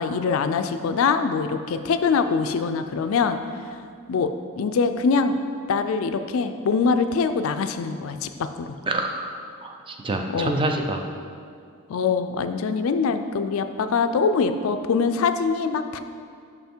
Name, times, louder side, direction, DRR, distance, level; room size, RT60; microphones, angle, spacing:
voice 1, 0.0-3.4 4.1-4.3 4.6-5.4 5.7-8.8 10.3-10.6 11.9-16.0, left 5 dB, 70° left, 9 dB, 0.3 m, -23 dB
voice 2, 8.9-11.0, right 2 dB, 25° right, 4 dB, 0.4 m, -27 dB
5.7 x 5.5 x 4.4 m, 2.3 s
head